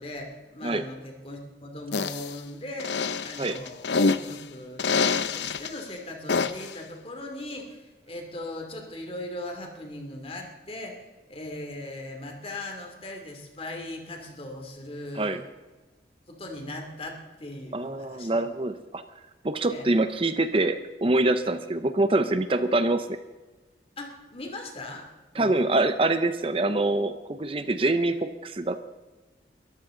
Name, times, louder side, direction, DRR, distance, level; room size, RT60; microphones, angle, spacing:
voice 1, 0.0-4.9 5.3-15.4 16.3-18.4 19.7-19.9 24.0-25.1 25.3-25.6, left 1 dB, 35° left, 2 dB, 2.8 m, -39 dB
sound 1, 1.9-2.3 2.8-4.4 4.8-5.7 6.3-6.7, left 4 dB, 85° left, 0.8 m, -26 dB
voice 2, 17.7-19.0 19.4-23.2 25.3-28.8, right 2 dB, 30° right, 10 dB, 0.7 m, -25 dB
22.5 x 14.0 x 3.9 m, 1.2 s
head